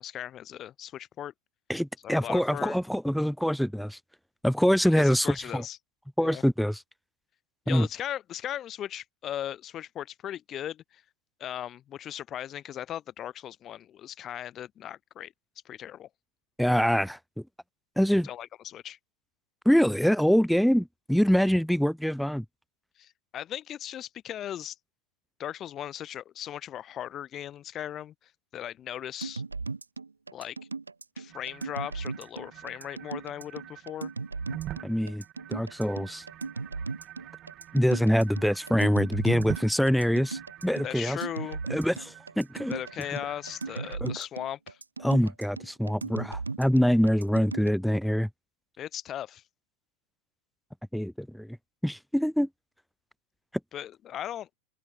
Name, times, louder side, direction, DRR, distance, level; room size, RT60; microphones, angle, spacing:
voice 1, 0.0-1.3 2.0-2.8 4.9-5.8 6.2-6.4 7.7-11.0 11.4-15.3 15.6-16.1 18.2-19.0 23.0-24.8 25.4-29.4 30.3-30.6 31.2-34.1 40.8-41.6 42.7-44.8 48.8-49.4 53.7-54.5, left 11 dB, 30° left, 7.9 m, -38 dB
voice 2, 1.7-4.0 4.4-5.6 6.2-6.8 7.7-7.9 16.6-17.2 18.0-18.3 19.6-22.4 34.8-35.2 35.5-36.2 37.7-41.2 41.7-42.7 44.0-44.1 45.0-48.3 50.9-51.6 51.8-52.5, equal, ahead, 1.6 m, -24 dB
sound 1, 29.2-47.7, right 4 dB, 80° right, 5.7 m, -37 dB
sound 2, 31.3-44.0, right 13 dB, 35° right, 5.1 m, -45 dB
open air
figure-of-eight pair, 90°, 0 cm